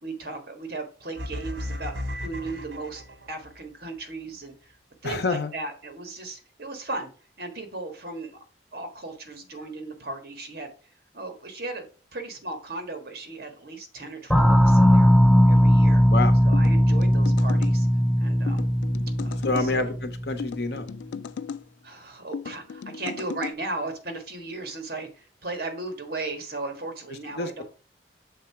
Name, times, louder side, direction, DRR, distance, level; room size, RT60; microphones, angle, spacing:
voice 1, 0.0-4.8 5.0-7.1 7.4-8.4 8.7-10.7 11.1-11.8 12.1-15.1 15.5-16.0 16.4-17.9 18.2-18.6 19.2-19.9 21.8-27.6, right 2 dB, 55° right, 5 dB, 1.6 m, -36 dB
sound 1, 1.2-3.6, left 1 dB, 85° right, 1.0 m, -35 dB
voice 2, 5.0-5.5 16.1-16.3 19.4-20.9 27.4-27.6, left 3 dB, 60° left, 8 dB, 1.0 m, -27 dB
sound 2, 14.3-20.6, equal, ahead, 0.3 m, -19 dB
sound 3, 16.5-17.8 18.5-19.7 20.4-21.6 22.3-23.5, left 6 dB, 85° left, 0.3 m, -36 dB
6.8 x 3.7 x 5.6 m, 0.37 s
head